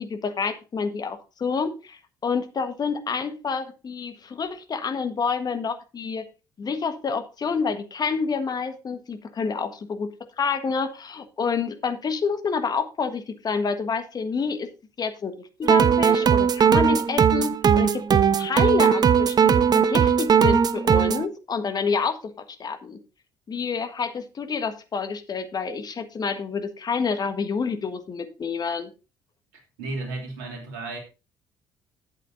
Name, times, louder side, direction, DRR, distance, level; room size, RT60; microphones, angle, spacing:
voice 1, 0.0-6.2 6.6-10.1 10.4-14.7 15.0-23.0 23.5-28.9, left 5 dB, 35° left, 1.4 m, -28 dB
sound 1, 15.6-21.2, right 7 dB, 35° right, 0.7 m, -19 dB
voice 2, 29.5-31.0, right 2 dB, 70° right, 3.0 m, -34 dB
11.5 x 8.3 x 2.7 m
figure-of-eight pair, 50°, 12 cm